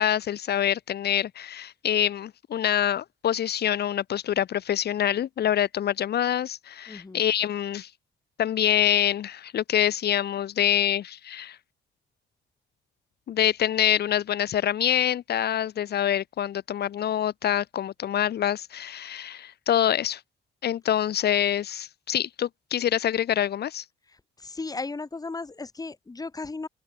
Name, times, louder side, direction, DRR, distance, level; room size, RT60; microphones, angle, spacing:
voice 1, 0.0-7.9 8.4-11.6 13.3-20.2 20.6-23.8, left 10 dB, 55° left, 0.8 m, -25 dB
voice 2, 6.9-7.3 24.4-26.7, left 3 dB, 20° left, 1.3 m, -35 dB
open air
cardioid pair, 90°, 20 cm